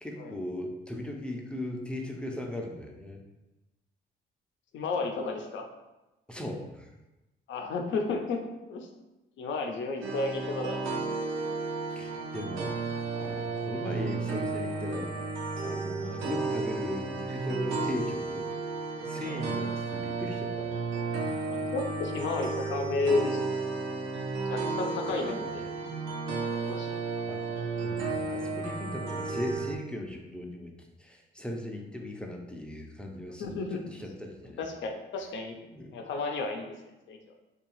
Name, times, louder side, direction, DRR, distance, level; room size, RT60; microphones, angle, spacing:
voice 1, 0.0-3.2 6.3-6.9 11.9-12.7 13.1-15.3 15.6-18.5 19.0-20.7 25.1-25.7 26.6-26.8 27.3-27.5 27.8-30.7 31.0-34.6 35.7-36.0, left 1 dB, 5° left, 1 dB, 0.4 m, -38 dB
voice 2, 4.7-5.6 7.5-8.4 8.7-8.9 9.4-10.9 16.0-16.2 19.3-19.4 21.7-23.4 24.5-25.6 26.5-27.0 33.4-33.8 34.6-35.6 35.9-36.7 37.1-37.2, left 3 dB, 70° left, 3 dB, 0.5 m, -32 dB
sound 1, 10.0-29.8, right 3 dB, 80° right, 0.6 m, -33 dB
2.7 x 2.3 x 3.0 m, 1.0 s
cardioid pair, 90°, 20 cm